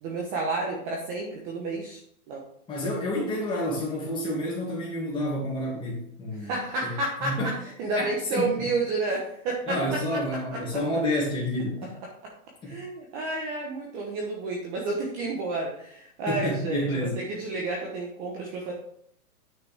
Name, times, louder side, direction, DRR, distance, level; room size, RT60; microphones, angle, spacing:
voice 1, 0.0-2.0 2.3-2.4 6.3-7.5 7.8-10.8 12.6-18.7, right 3 dB, 20° right, -2 dB, 0.9 m, -31 dB
voice 2, 2.7-6.9 7.2-7.5 8.0-8.7 9.7-11.9 12.6-12.8 16.3-17.2, left 1 dB, 10° left, -4 dB, 2.3 m, -29 dB
9.5 x 6.0 x 3.5 m, 0.68 s
hypercardioid pair, 160°, 46 cm